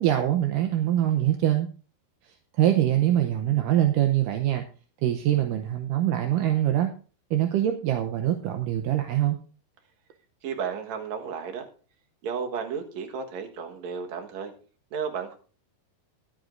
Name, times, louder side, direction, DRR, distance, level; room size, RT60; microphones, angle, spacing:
voice 1, 0.0-1.7 2.6-4.6 5.0-6.9 7.3-9.4, right 12 dB, 75° right, 5 dB, 2.0 m, -23 dB
voice 2, 10.4-11.7 12.2-14.5 14.9-15.4, right 6 dB, 60° right, 3 dB, 2.2 m, -33 dB
22.0 x 8.1 x 2.6 m, 0.38 s
omnidirectional pair, 4.6 m